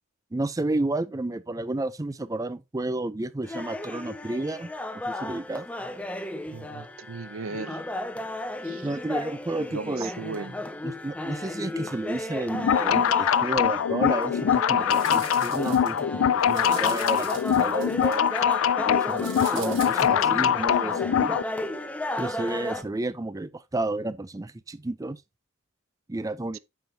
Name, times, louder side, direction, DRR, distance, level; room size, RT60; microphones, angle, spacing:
voice 1, 0.3-4.7 5.1-5.7 8.8-10.4 10.8-18.2 18.8-21.4 22.2-25.2 26.1-26.6, right 2 dB, 15° right, 0.4 m, -31 dB
sound 1, 3.4-22.8, left 1 dB, 5° left, 0.8 m, -34 dB
voice 2, 6.5-7.8 8.6-8.9 9.7-10.5, right 4 dB, 85° right, 0.6 m, -37 dB
sound 2, 12.5-21.4, left 8 dB, 80° left, 0.4 m, -23 dB
sound 3, 14.2-14.3 14.8-16.0 16.4-18.5 19.1-20.0, right 7 dB, 65° right, 3.2 m, -42 dB
9.4 x 6.9 x 2.7 m
head